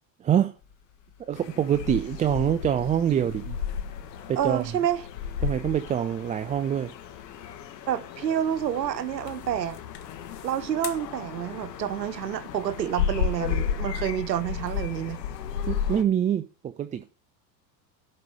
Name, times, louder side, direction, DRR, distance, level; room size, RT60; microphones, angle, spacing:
voice 1, 0.2-0.5 1.3-3.4 4.3-4.7 5.4-6.9 15.7-17.0, right 9 dB, 15° right, 0.4 m, -25 dB
sound 1, 0.6-13.8, left 9 dB, 35° left, 1.7 m, -49 dB
sound 2, 1.3-16.0, left 7 dB, 75° left, 1.7 m, -33 dB
voice 2, 4.4-5.0 7.9-9.8 10.4-15.2, right 10 dB, 85° right, 1.0 m, -28 dB
12.0 x 5.5 x 6.4 m
hypercardioid pair, 90°, 49 cm